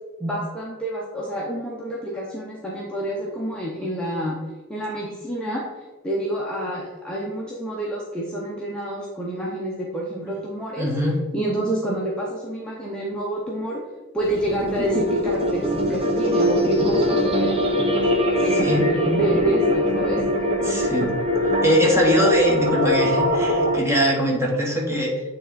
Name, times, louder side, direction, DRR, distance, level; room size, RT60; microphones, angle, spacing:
voice 1, 0.2-4.4 4.7-10.9 11.3-13.8 14.1-17.5 18.4-20.2, right 1 dB, 5° left, -5 dB, 0.8 m, -27 dB
voice 2, 10.8-11.2 18.6-18.8 20.6-21.1 21.6-25.1, equal, 15° right, -2 dB, 1.4 m, -21 dB
sound 1, 14.2-23.8, equal, 30° right, 1.0 m, -22 dB
9.0 x 3.3 x 4.0 m, 1.2 s
head